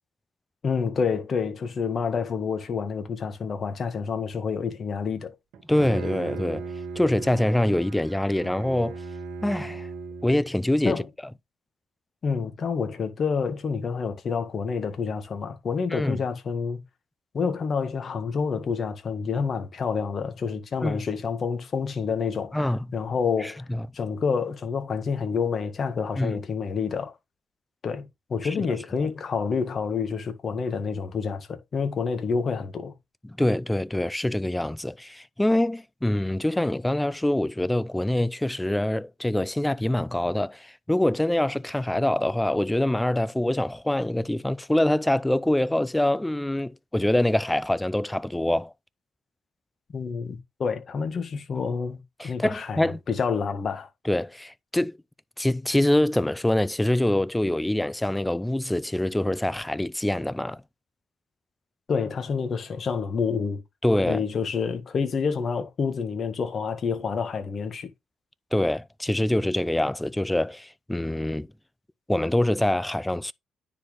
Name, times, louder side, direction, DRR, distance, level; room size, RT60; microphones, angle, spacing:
voice 1, 0.6-5.3 10.9-11.1 12.2-16.8 17.3-23.6 23.9-27.1 27.8-32.9 49.9-53.9 61.9-63.6 64.1-67.9, left 5 dB, 50° left, 1.9 m, -28 dB
Bowed string instrument, 5.5-10.6, right 4 dB, 85° right, 2.1 m, -37 dB
voice 2, 5.7-6.7 7.0-8.9 9.4-9.9 10.2-11.0 15.9-16.2 20.8-21.0 22.5-22.8 23.4-23.9 26.2-26.4 28.4-28.7 29.0-29.1 33.2-48.7 52.2-53.0 54.0-55.0 55.4-60.6 63.8-64.2 68.5-71.5 72.1-73.3, left 1 dB, 10° left, 0.5 m, -25 dB
9.8 x 4.3 x 3.4 m
cardioid pair, 90°, 0 cm